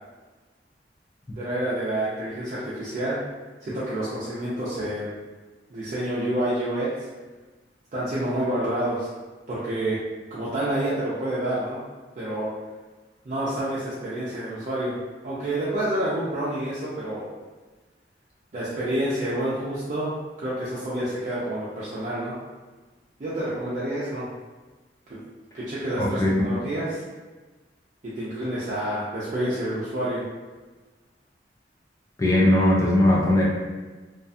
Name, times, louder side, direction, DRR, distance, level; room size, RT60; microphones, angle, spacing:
voice 1, 1.3-3.2 3.6-5.1 5.7-6.9 7.9-9.1 9.5-10.0 10.3-11.8 12.1-12.5 13.3-15.0 15.2-17.2 18.5-22.3 23.2-24.3 25.1-25.2 25.5-27.0 28.1-30.2, right 1 dB, 45° right, -9 dB, 0.4 m, -28 dB
voice 2, 26.0-26.3 32.2-33.4, left 1 dB, 20° left, -4 dB, 0.4 m, -19 dB
2.4 x 2.2 x 2.6 m, 1.3 s
head